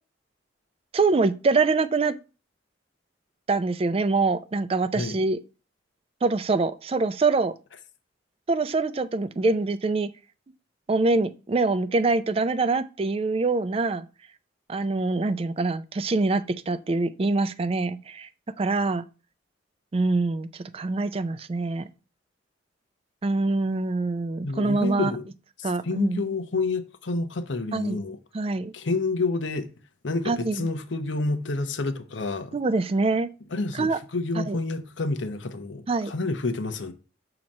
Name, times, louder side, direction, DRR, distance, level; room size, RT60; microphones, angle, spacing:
voice 1, 0.9-2.1 3.5-5.4 6.2-7.5 8.5-10.1 10.9-14.1 14.7-18.3 18.6-19.0 19.9-21.9 23.2-25.1 25.6-26.2 27.7-28.0 28.3-28.7 30.3-30.7 32.5-33.3 33.7-34.0 34.4-34.6 35.9-36.1, right 3 dB, 30° right, 0.4 m, -24 dB
voice 2, 24.4-25.3 25.6-28.2 28.7-29.7 30.0-32.6 33.5-36.9, left 3 dB, 85° left, 0.8 m, -29 dB
7.3 x 2.9 x 5.2 m
head